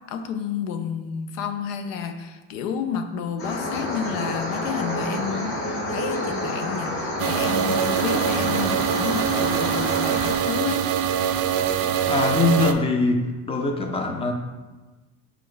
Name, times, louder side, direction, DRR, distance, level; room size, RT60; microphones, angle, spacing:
voice 1, 0.1-10.9, left 6 dB, 90° left, 8 dB, 0.6 m, -30 dB
sound 1, 3.4-10.4, left 1 dB, 35° left, 1.0 m, -29 dB
sound 2, 7.2-12.7, right 9 dB, 55° right, 0.4 m, -24 dB
voice 2, 12.1-14.3, left 3 dB, 15° left, 4 dB, 0.5 m, -22 dB
4.5 x 3.0 x 3.9 m, 1.2 s
supercardioid pair, 115°, 38 cm